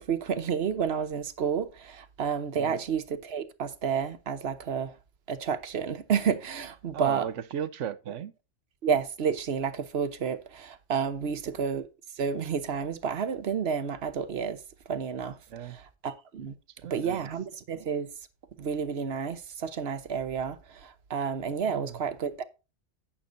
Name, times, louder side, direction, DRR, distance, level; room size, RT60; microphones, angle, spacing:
voice 1, 0.0-4.9 5.3-7.3 8.8-11.8 12.2-14.6 14.9-16.5 16.9-18.1 18.6-22.4, right 7 dB, 60° right, 1.1 m, -30 dB
voice 2, 6.9-8.3 11.2-11.3 15.5-15.8 16.8-17.3 21.7-22.0, right 9 dB, 90° right, 1.1 m, -36 dB
11.5 x 8.7 x 2.6 m
omnidirectional pair, 1.2 m